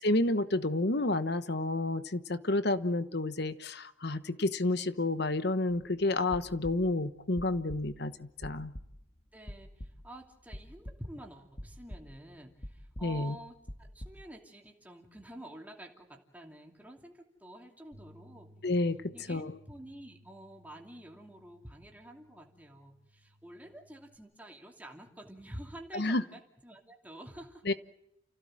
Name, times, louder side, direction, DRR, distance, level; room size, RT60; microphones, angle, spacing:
voice 1, 0.0-8.7 13.0-13.3 18.6-19.6 25.9-26.2 27.7-27.8, left 2 dB, 55° left, 13 dB, 1.1 m, -30 dB
sound 1, 5.8-5.9 6.2-7.1 7.4-8.0 8.4-9.1 9.5-10.2 10.5-11.2 11.5-12.3 12.6-14.2, equal, 30° left, 1.8 m, -45 dB
voice 2, 9.3-18.5 19.1-27.6, right 1 dB, 10° right, 2 dB, 2.7 m, -49 dB
sound 2, 17.9-24.2, equal, 50° right, 3.6 m, -61 dB
30.0 x 16.0 x 7.6 m, 0.81 s
head